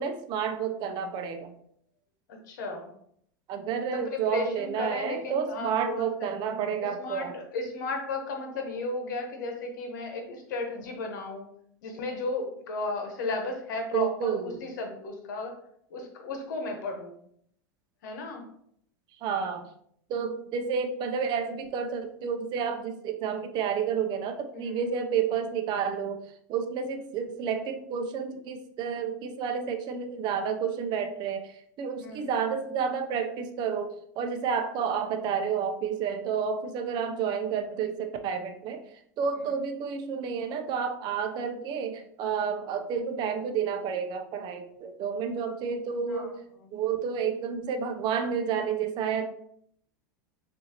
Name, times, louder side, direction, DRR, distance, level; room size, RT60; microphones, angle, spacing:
voice 1, 0.0-1.5 3.5-7.4 13.9-14.5 19.2-19.7 20.1-26.2 26.5-38.9 39.2-46.4 46.7-49.3, right 7 dB, 50° right, 6 dB, 0.7 m, -30 dB
voice 2, 2.5-2.9 3.9-6.3 6.8-11.5 11.8-15.5 15.9-17.1 18.0-18.4 24.5-24.9 32.0-32.3 39.4-39.5 46.1-46.3, left 3 dB, 80° left, 4 dB, 1.2 m, -34 dB
6.3 x 2.7 x 2.9 m, 0.68 s
supercardioid pair, 110°, 10 cm